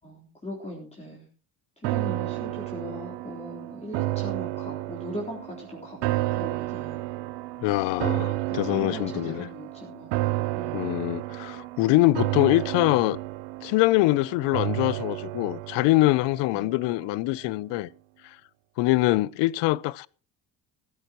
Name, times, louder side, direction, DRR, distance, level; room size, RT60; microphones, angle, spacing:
voice 1, 0.0-1.3 1.8-7.0 8.2-10.1 10.6-10.9 16.5-16.7, equal, 15° left, 3.8 m, -39 dB
sound 1, 1.8-17.1 17.5-17.6, right 18 dB, 80° right, 0.7 m, -31 dB
voice 2, 7.6-9.5 10.7-13.2 13.6-17.9 18.8-20.1, left 18 dB, 85° left, 0.6 m, -24 dB
15.0 x 14.5 x 3.0 m
cardioid pair, 115°, 41 cm